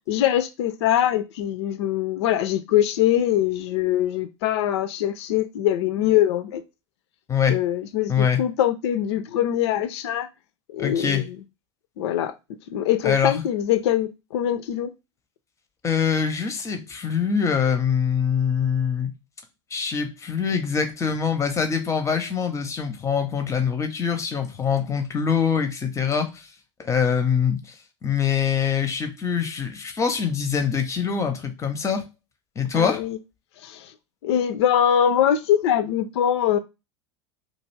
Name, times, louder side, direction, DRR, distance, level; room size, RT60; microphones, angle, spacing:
voice 1, 0.1-6.6 7.5-10.3 10.7-11.4 12.0-12.3 12.7-14.9 32.7-33.2 33.6-33.9 34.2-36.6, left 11 dB, 60° left, 0.4 m, -23 dB
voice 2, 10.8-11.2 13.0-13.4 15.8-19.1 19.7-26.5 26.8-27.7 28.0-32.1 32.6-33.0, left 7 dB, 20° left, 0.6 m, -24 dB
2.5 x 2.3 x 3.2 m
figure-of-eight pair, 80°, 16 cm